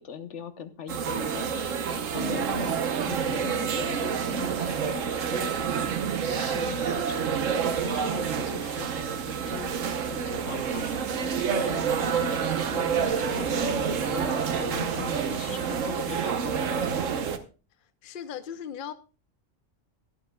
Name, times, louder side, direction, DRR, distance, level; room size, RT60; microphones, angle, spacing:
voice 1, 0.0-5.5 5.8-5.9 6.3-8.9 9.3-9.7 10.1-12.4 12.7-16.6, left 6 dB, 65° left, 1.2 m, -40 dB
sound 1, 0.9-17.4, right 7 dB, 80° right, 1.3 m, -28 dB
sound 2, 10.6-15.9, left 3 dB, 85° left, 2.0 m, -50 dB
voice 2, 18.0-18.9, left 8 dB, 50° left, 0.7 m, -37 dB
23.0 x 7.9 x 2.3 m
omnidirectional pair, 1.3 m